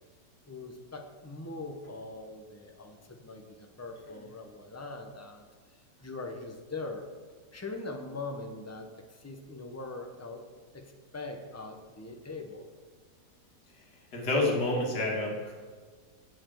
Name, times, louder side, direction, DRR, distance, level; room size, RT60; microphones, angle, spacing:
voice 1, 0.5-7.1 7.5-10.5 10.7-12.7, left 3 dB, 15° left, 4 dB, 0.6 m, -42 dB
voice 2, 14.1-15.5, left 2 dB, 75° left, -1 dB, 2.4 m, -28 dB
8.5 x 6.7 x 7.7 m, 1.5 s
omnidirectional pair, 1.8 m